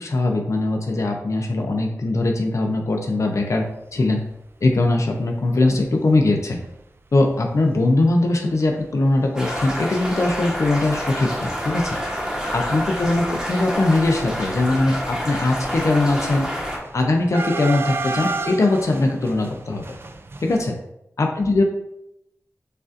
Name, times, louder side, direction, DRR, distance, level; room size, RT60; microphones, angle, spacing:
voice 1, 0.0-3.7 3.9-4.2 4.6-6.6 7.1-12.0 12.5-16.5 16.9-20.0 20.4-20.8 21.2-21.6, left 2 dB, 60° left, 2 dB, 0.5 m, -21 dB
sound 1, 4.6-4.9 5.3-5.4 5.6-5.8 6.6-6.7 7.1-7.3 7.6-7.7 8.1-10.3 10.5-11.2 11.5-20.6, right 3 dB, 45° right, 0.3 m, -33 dB
sound 2, 9.3-16.8, equal, 10° right, 1.0 m, -28 dB
6.4 x 2.5 x 2.5 m, 0.82 s
wide cardioid pair, 80°, 6 cm